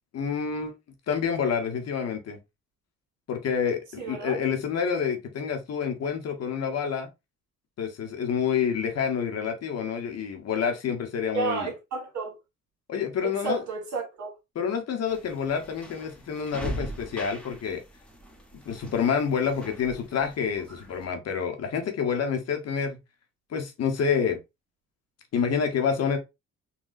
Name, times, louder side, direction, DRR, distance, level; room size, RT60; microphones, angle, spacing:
voice 1, 0.1-0.7 1.1-2.4 3.3-7.1 7.8-11.7 12.9-13.6 14.5-17.8 18.7-23.0 23.5-24.4 25.3-26.2, left 6 dB, 55° left, 0.9 m, -28 dB
voice 2, 4.0-4.4 11.3-12.3 13.2-14.3, right 4 dB, 70° right, 1.6 m, -31 dB
sound 1, 15.1-21.1, equal, 5° left, 0.9 m, -41 dB
3.9 x 2.3 x 2.4 m
cardioid pair, 90°, 30 cm